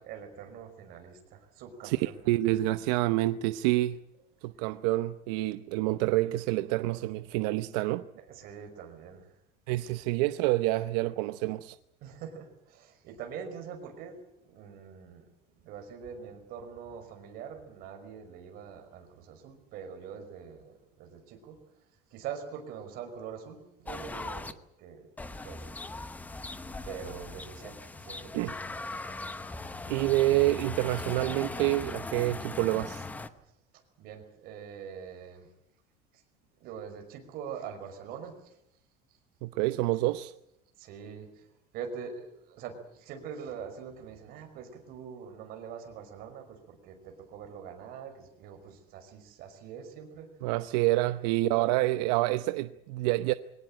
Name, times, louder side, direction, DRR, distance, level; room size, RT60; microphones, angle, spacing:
voice 1, 0.1-2.2 8.3-9.3 12.0-15.2 15.6-21.6 22.1-25.8 26.8-28.6 33.3-35.5 36.1-36.2 36.6-38.6 40.8-41.5 41.7-50.3 51.5-51.7, right 7 dB, 45° right, 5.3 m, -44 dB
voice 2, 1.8-4.0 4.4-8.0 9.7-11.8 28.3-28.5 29.9-33.0 39.4-40.3 50.4-53.3, right 17 dB, 80° right, 0.8 m, -27 dB
sound 1, 23.9-24.5 25.2-33.3, left 3 dB, 10° left, 0.9 m, -39 dB
23.5 x 18.5 x 9.0 m
cardioid pair, 175°, 21 cm